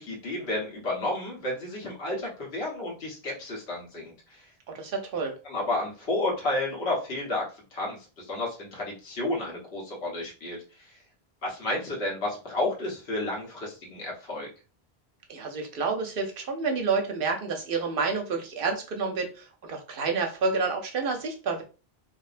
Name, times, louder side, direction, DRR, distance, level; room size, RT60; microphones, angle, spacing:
voice 1, 0.0-4.5 5.4-7.4 7.7-10.9 11.4-14.5, left 2 dB, 80° left, -3 dB, 1.3 m, -31 dB
voice 2, 4.7-5.3 15.3-21.6, right 4 dB, 65° right, 4 dB, 0.7 m, -29 dB
2.7 x 2.0 x 2.4 m, 0.34 s
omnidirectional pair, 1.1 m